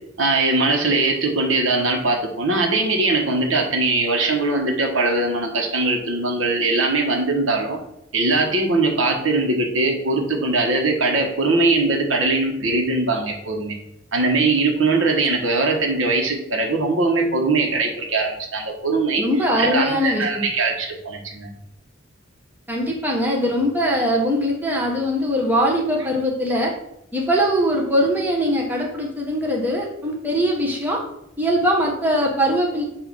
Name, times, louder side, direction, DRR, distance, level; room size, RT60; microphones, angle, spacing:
voice 1, 0.2-7.8 8.1-13.8 14.1-19.2 19.6-21.5, right 3 dB, 85° right, 2 dB, 1.3 m, -21 dB
voice 2, 19.2-20.5 22.7-26.7 27.1-31.0 31.4-32.8, equal, 10° right, -1 dB, 1.1 m, -21 dB
7.6 x 2.8 x 5.4 m, 0.81 s
head